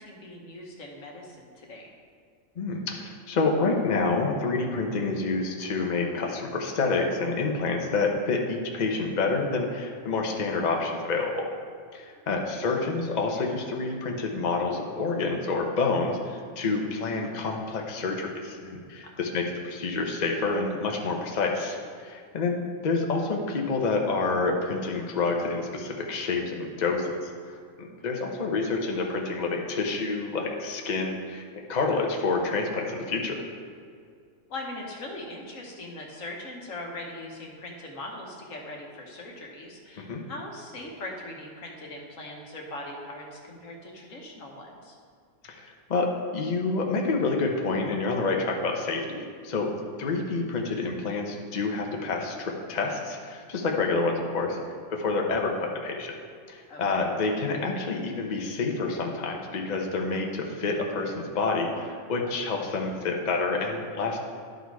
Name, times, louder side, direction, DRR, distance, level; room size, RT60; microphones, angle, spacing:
voice 1, 0.0-1.9 12.3-12.5 19.0-19.2 27.9-28.0 34.5-45.0 56.7-57.0, left 2 dB, 85° left, 0 dB, 1.6 m, -40 dB
voice 2, 2.6-11.5 11.9-31.4 31.7-33.4 40.0-40.2 45.4-49.7 50.0-54.6 54.9-56.1 56.5-64.2, left 3 dB, 40° left, 1 dB, 0.8 m, -28 dB
12.0 x 4.3 x 4.7 m, 2.2 s
omnidirectional pair, 1.3 m